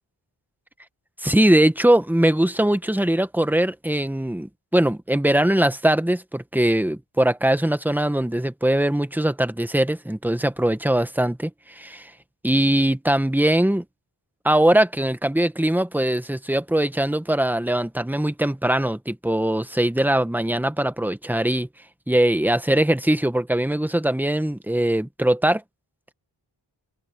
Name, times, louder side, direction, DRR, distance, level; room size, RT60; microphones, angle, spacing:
voice 1, 1.2-12.1 12.4-13.8 14.4-21.7 22.1-25.6, right 1 dB, 5° right, 1.1 m, -21 dB
open air
wide cardioid pair, 80°, 47 cm